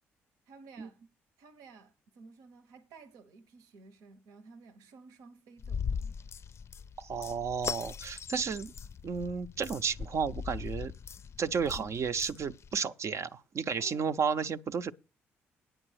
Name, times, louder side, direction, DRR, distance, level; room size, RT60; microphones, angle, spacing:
voice 1, 0.5-1.0 1.4-6.2 11.8-11.9 13.8-14.1, right 4 dB, 80° right, 1.0 m, -53 dB
sound 1, 5.6-12.8, left 6 dB, 45° left, 0.5 m, -40 dB
voice 2, 7.0-8.7 9.0-10.9 11.4-14.9, right 6 dB, 50° right, 0.6 m, -32 dB
9.0 x 7.7 x 6.3 m
hypercardioid pair, 50°, 6 cm